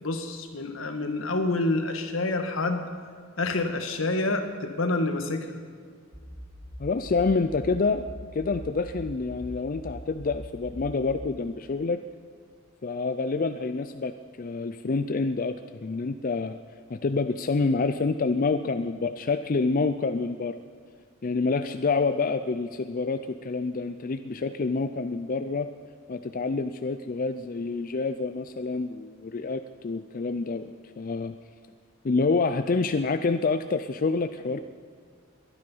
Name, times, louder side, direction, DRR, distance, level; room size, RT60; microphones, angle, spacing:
voice 1, 0.0-2.8 3.4-5.5, left 2 dB, 85° left, 6 dB, 1.6 m, -27 dB
sound 1, 6.1-11.1, equal, 10° right, 3.0 m, -42 dB
voice 2, 6.8-8.0 8.3-12.0 12.8-14.1 14.4-16.6 16.9-20.5 21.2-25.7 26.1-30.7 31.0-31.3 32.0-34.6, left 4 dB, 45° left, 9 dB, 0.5 m, -27 dB
22.5 x 9.7 x 5.5 m, 2.1 s
head